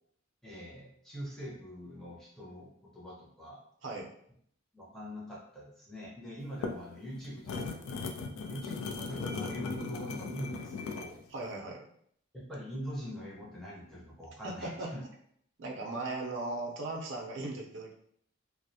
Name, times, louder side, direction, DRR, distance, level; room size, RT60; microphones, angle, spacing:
voice 1, 0.4-2.7 2.9-3.6 4.7-8.0 8.5-11.2 12.3-15.0, equal, ahead, -5 dB, 0.5 m, -43 dB
sound 1, 6.4-11.2, left 4 dB, 85° left, 0.3 m, -38 dB
voice 2, 11.3-11.8 14.4-14.9 15.6-17.9, right 2 dB, 65° right, 0 dB, 0.5 m, -37 dB
2.4 x 2.0 x 2.7 m, 0.65 s
head